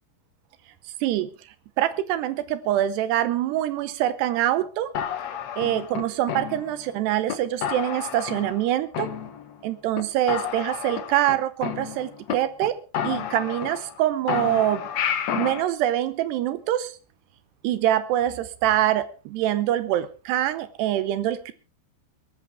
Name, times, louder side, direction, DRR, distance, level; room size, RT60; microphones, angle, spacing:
voice 1, 1.0-1.3 1.8-4.9 5.6-9.1 9.6-12.8 13.0-14.9 15.4-17.0 17.6-21.5, right 12 dB, 75° right, 14 dB, 2.7 m, -24 dB
sound 1, 4.9-6.9 7.3-7.4 7.6-8.7 8.9-9.7 9.9-10.0 10.3-12.3 12.6-12.7 12.9-14.0 14.3-15.6, left 9 dB, 75° left, 1.6 m, -30 dB
21.0 x 13.5 x 3.4 m, 0.32 s
omnidirectional pair, 5.2 m